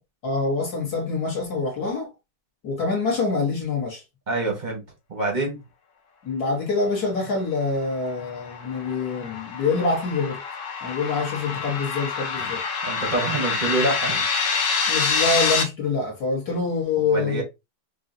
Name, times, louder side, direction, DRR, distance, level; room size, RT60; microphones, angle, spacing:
voice 1, 0.2-2.1 2.6-4.0 6.2-10.4 10.8-12.6 14.9-17.4, left 4 dB, 50° left, 1.6 m, -25 dB
voice 2, 4.3-4.8 5.1-5.6 12.8-14.2 17.0-17.4, right 2 dB, 30° right, 0.8 m, -26 dB
sound 1, 7.9-15.6, left 5 dB, 65° left, 1.3 m, -26 dB
5.3 x 2.3 x 2.6 m
omnidirectional pair, 2.4 m